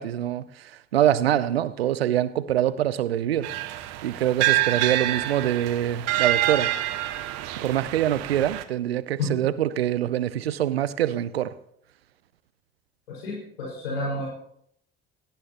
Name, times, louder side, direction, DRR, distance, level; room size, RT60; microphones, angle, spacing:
voice 1, 0.0-3.5 4.0-6.7 7.6-11.5, right 11 dB, 85° right, 0.7 m, -24 dB
sound 1, 3.4-8.6, right 15 dB, 60° right, 1.2 m, -27 dB
voice 2, 13.1-14.3, left 2 dB, 80° left, 5.2 m, -30 dB
17.5 x 17.0 x 2.9 m
hypercardioid pair, 65°, 30 cm